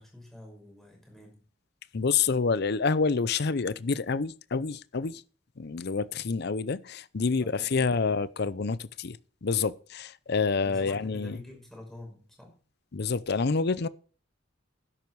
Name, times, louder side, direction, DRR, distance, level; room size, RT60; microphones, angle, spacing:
voice 1, 0.0-1.4 7.3-8.1 10.6-12.5, left 1 dB, ahead, 5.7 m, -47 dB
voice 2, 1.9-5.2 5.6-11.4 12.9-13.9, left 4 dB, 55° left, 0.6 m, -28 dB
12.5 x 10.5 x 4.7 m
head